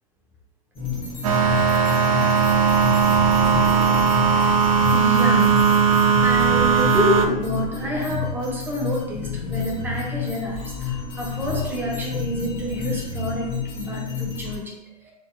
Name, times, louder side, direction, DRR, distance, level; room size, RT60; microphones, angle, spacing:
sound 1, 0.7-14.6, left 6 dB, 25° left, 1.4 m, -30 dB
sound 2, 1.2-7.3, right 6 dB, 55° right, 0.5 m, -18 dB
voice 1, 4.9-5.7 6.2-15.1, equal, 10° right, -1 dB, 0.8 m, -28 dB
4.4 x 2.8 x 2.2 m, 0.87 s
figure-of-eight pair, 105°, 21 cm